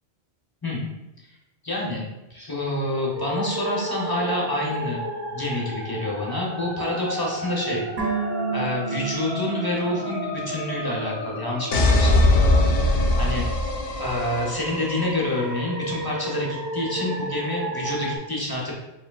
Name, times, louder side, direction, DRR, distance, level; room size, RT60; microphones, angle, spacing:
voice 1, 1.6-2.0 2.3-5.0 5.3-8.2 8.5-12.2 12.6-12.8 13.2-13.5 14.0-18.7, left 1 dB, 25° left, -3 dB, 0.7 m, -28 dB
sound 1, 3.1-18.2, right 1 dB, 25° right, 1.1 m, -32 dB
sound 2, 8.0-11.3 11.5-11.6, right 4 dB, 55° right, 1.0 m, -32 dB
sound 3, 11.7-14.6, left 2 dB, 70° left, 0.7 m, -20 dB
4.8 x 3.2 x 2.3 m, 0.93 s
omnidirectional pair, 1.1 m